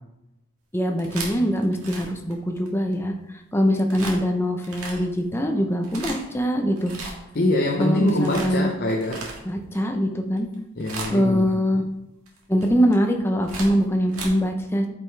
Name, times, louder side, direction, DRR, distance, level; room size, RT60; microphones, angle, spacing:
voice 1, 0.7-3.1 3.5-6.9 7.8-8.7 9.4-10.5 11.1-11.8 12.5-14.9, equal, 10° left, 4 dB, 0.7 m, -23 dB
sound 1, 0.8-2.9 3.9-4.2 4.6-5.2 5.7-6.4 6.8-7.5 7.8-9.8 10.3-10.5 10.8-11.4 12.3-14.3, right 3 dB, 80° right, 1.7 m, -36 dB
voice 2, 7.3-9.3 10.8-11.5, left 1 dB, 45° left, 0 dB, 0.7 m, -24 dB
8.8 x 5.2 x 3.4 m, 0.89 s
head